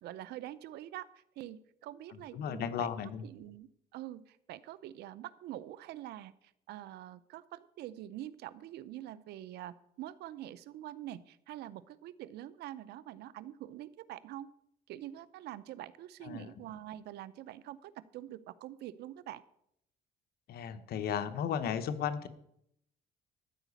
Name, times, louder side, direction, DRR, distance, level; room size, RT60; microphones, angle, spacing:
voice 1, 0.0-1.1 1.4-2.9 3.2-6.3 6.7-14.5 14.9-19.4, right 13 dB, 75° right, 17 dB, 0.6 m, -45 dB
voice 2, 2.1-3.2 16.2-16.5 20.5-22.3, left 8 dB, 65° left, 10 dB, 1.0 m, -35 dB
13.5 x 4.9 x 8.3 m, 0.74 s
cardioid pair, 110°, 17 cm